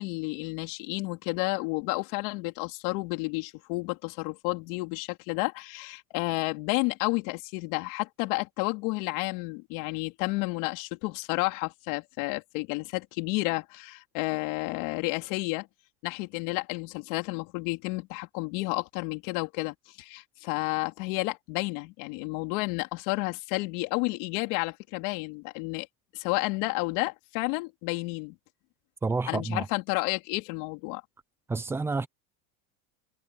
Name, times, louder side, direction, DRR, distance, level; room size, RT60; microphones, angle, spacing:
voice 1, 0.0-15.7 16.0-25.9 26.1-28.4 29.3-31.0, left 25 dB, 55° left, 3.6 m, -31 dB
voice 2, 29.0-29.7 31.5-32.1, right 3 dB, 5° right, 0.4 m, -29 dB
supercardioid pair, 155°, 50 cm